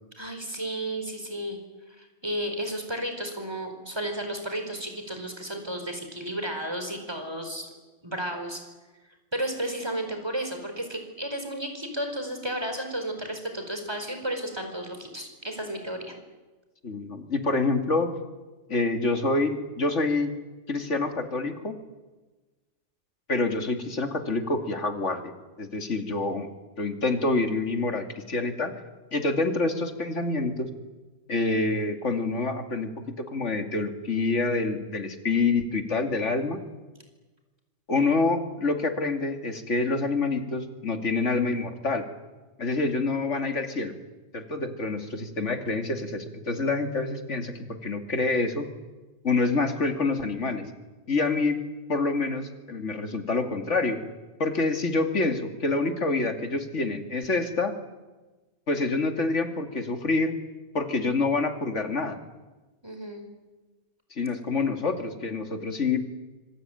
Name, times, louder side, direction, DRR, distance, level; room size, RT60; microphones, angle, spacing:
voice 1, 0.2-1.6 2.0-7.7 8.0-8.6 9.3-16.1 62.8-63.2, right 1 dB, 20° right, 6 dB, 5.0 m, -33 dB
voice 2, 16.8-18.1 18.7-20.3 20.7-21.8 23.3-25.3 25.6-26.5 26.8-28.8 29.1-30.7 31.3-32.9 33.3-36.6 37.9-42.1 42.6-43.9 44.3-47.5 47.8-48.7 49.2-50.7 51.1-51.6 51.9-54.0 54.4-57.7 58.7-60.4 60.7-62.2 64.1-66.0, left 3 dB, 90° left, 6 dB, 2.9 m, -27 dB
26.0 x 24.5 x 9.2 m, 1.2 s
omnidirectional pair, 1.2 m